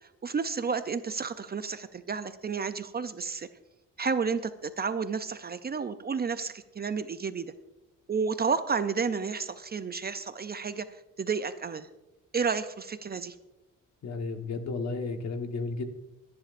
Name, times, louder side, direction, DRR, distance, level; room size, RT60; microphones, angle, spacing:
voice 1, 0.0-3.5 4.0-7.5 8.1-11.9 12.3-13.4, right 5 dB, 30° right, 11 dB, 0.5 m, -31 dB
voice 2, 14.0-15.8, left 3 dB, 55° left, 6 dB, 1.4 m, -33 dB
22.5 x 10.5 x 2.5 m, 0.98 s
cardioid pair, 125°, 33 cm